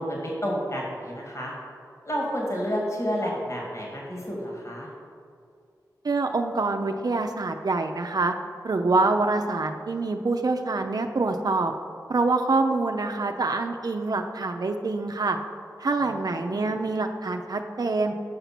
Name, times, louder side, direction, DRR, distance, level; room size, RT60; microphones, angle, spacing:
voice 1, 0.0-1.5 2.0-4.9 16.0-16.1 16.4-16.7, equal, 40° left, -2 dB, 2.1 m, -30 dB
voice 2, 6.0-8.3 8.6-11.7 12.1-15.4 15.8-18.1, right 3 dB, 60° right, 5 dB, 0.5 m, -25 dB
7.9 x 5.7 x 5.9 m, 2.3 s
cardioid pair, 45°, 7 cm